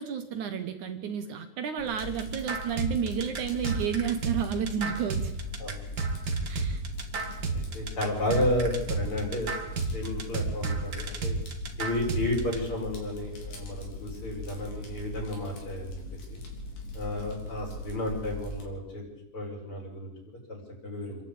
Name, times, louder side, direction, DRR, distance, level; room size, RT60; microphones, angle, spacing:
voice 1, 0.0-5.3 6.5-6.8, right 8 dB, 65° right, 7 dB, 2.5 m, -31 dB
Fire, 1.8-18.6, left 1 dB, 70° left, 5.1 m, -41 dB
sound 1, 2.0-12.6, right 3 dB, 35° right, 2.0 m, -32 dB
voice 2, 7.5-11.3 11.8-16.0 16.3-16.4 16.9-19.0 19.3-20.1 20.5-21.2, left 1 dB, 40° left, -1 dB, 6.2 m, -32 dB
27.0 x 11.5 x 8.8 m, 0.88 s
omnidirectional pair, 3.9 m